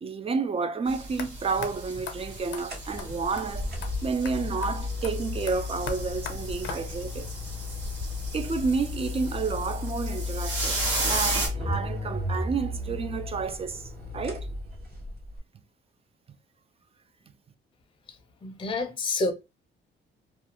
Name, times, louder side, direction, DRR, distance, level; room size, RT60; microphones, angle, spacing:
voice 1, 0.0-3.7 4.0-7.3 8.3-14.5, right 4 dB, 30° right, 0.4 m, -30 dB
sound 1, 0.9-11.5, right 2 dB, 75° right, 1.4 m, -35 dB
sound 2, 1.2-1.3 1.6-1.7 2.1-2.2 2.5-2.6 3.0-3.1 3.4-3.5 3.8-3.9 4.2-4.3 4.6-4.7 5.0-7.1, left 7 dB, 75° left, 0.6 m, -40 dB
sound 3, 2.5-15.4, left 3 dB, 55° right, 1.0 m, -34 dB
voice 2, 18.4-19.3, left 3 dB, 25° left, 0.5 m, -28 dB
2.4 x 2.3 x 2.8 m
cardioid pair, 90°, 20 cm